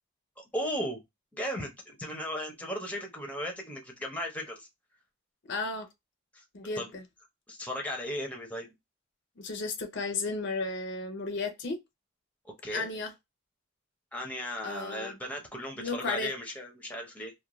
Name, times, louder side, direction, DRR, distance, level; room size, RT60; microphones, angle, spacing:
voice 1, 0.4-1.0 1.3-4.7 6.3-6.4 6.8-6.9 7.5-8.7 12.4-12.9 14.1-17.3, equal, 5° left, 0.6 m, -36 dB
voice 2, 5.5-5.9 6.5-7.0 9.4-11.8 12.7-13.1 14.6-15.1 15.8-16.3, left 3 dB, 55° left, 0.5 m, -34 dB
2.4 x 2.2 x 2.9 m
head